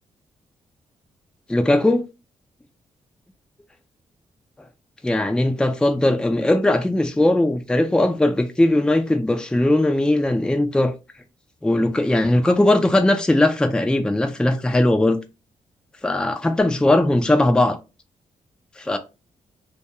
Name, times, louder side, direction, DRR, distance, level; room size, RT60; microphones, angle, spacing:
voice 1, 1.5-2.0 5.0-10.9 11.6-15.2 16.0-17.8 18.8-19.0, left 1 dB, 5° left, 0.4 m, -19 dB
2.3 x 2.2 x 2.9 m
cardioid pair, 60°, 14 cm